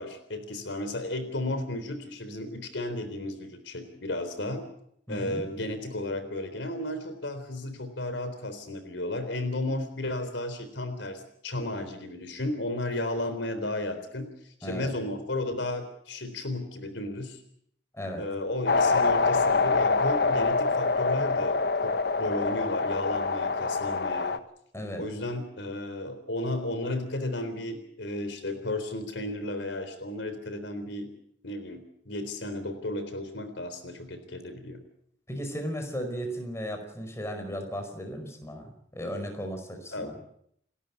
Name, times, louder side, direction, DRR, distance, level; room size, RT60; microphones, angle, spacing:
voice 1, 0.0-4.6 5.1-14.3 14.6-17.4 18.2-24.4 25.0-31.1 31.4-34.8 39.9-40.1, left 1 dB, 85° left, 9 dB, 3.8 m, -33 dB
voice 2, 5.1-5.4 14.6-14.9 17.9-18.2 24.7-25.0 35.3-40.1, equal, 15° left, 5 dB, 5.2 m, -35 dB
sound 1, 18.7-24.4, left 4 dB, 60° left, 1.1 m, -25 dB
29.5 x 12.5 x 8.4 m, 0.70 s
head